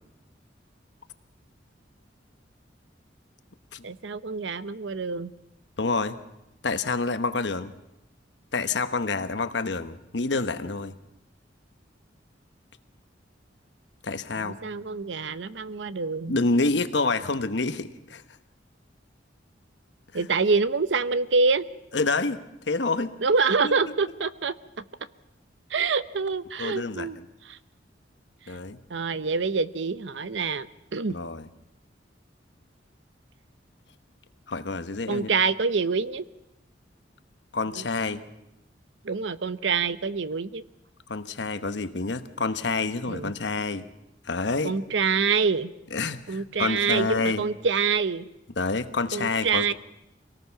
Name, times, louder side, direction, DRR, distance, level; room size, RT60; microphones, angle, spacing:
voice 1, 3.8-5.3 14.4-16.4 20.1-21.6 23.2-24.8 25.7-27.2 27.4-27.6 28.9-31.2 35.1-36.3 37.7-37.8 39.0-40.6 43.1-43.3 44.6-45.7 46.3-48.3 49.1-49.7, right 4 dB, 75° right, 15 dB, 0.8 m, -26 dB
voice 2, 5.8-6.2 6.6-7.7 8.5-10.9 14.0-14.6 16.3-18.2 20.1-20.3 21.9-22.4 22.7-23.1 23.6-23.7 26.6-27.1 28.5-28.8 31.1-31.5 34.5-35.3 37.5-38.2 41.1-43.8 44.2-44.7 45.9-47.4 48.6-49.7, left 3 dB, 70° left, 10 dB, 1.1 m, -28 dB
25.0 x 18.5 x 5.8 m, 0.89 s
head